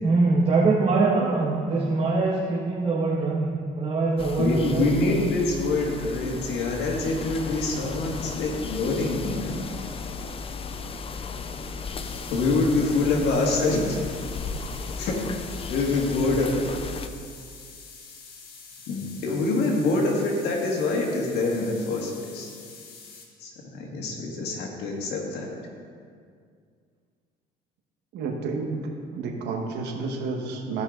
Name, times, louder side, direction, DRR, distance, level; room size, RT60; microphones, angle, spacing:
voice 1, 0.0-5.2 13.1-13.2, right 3 dB, 30° right, -6 dB, 1.6 m, -23 dB
sound 1, 4.2-17.1, left 4 dB, 35° left, 0.5 m, -35 dB
voice 2, 4.4-9.6 12.3-14.0 15.0-15.1 15.7-16.7 18.9-22.5 23.4-25.5, left 3 dB, 80° left, 0 dB, 1.9 m, -25 dB
sound 2, 12.0-23.2, left 5 dB, 65° left, 1.7 m, -46 dB
voice 3, 28.1-30.8, right 4 dB, 80° right, 1 dB, 1.4 m, -31 dB
15.5 x 5.7 x 3.9 m, 2.1 s
cardioid pair, 110°, 17 cm